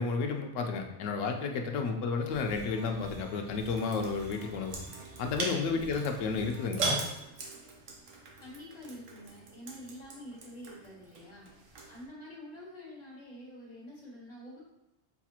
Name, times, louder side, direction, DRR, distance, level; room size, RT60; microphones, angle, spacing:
voice 1, 0.0-4.8 5.2-7.0, left 4 dB, 90° left, 4 dB, 0.9 m, -32 dB
sound 1, 2.3-6.7, right 3 dB, 45° right, 0.4 m, -49 dB
sound 2, 3.7-12.0, right 3 dB, 90° right, 1.1 m, -40 dB
voice 2, 8.4-11.5 11.9-14.6, left 1 dB, 35° left, -6 dB, 1.6 m, -47 dB
6.6 x 2.3 x 2.9 m, 0.91 s
omnidirectional pair, 1.3 m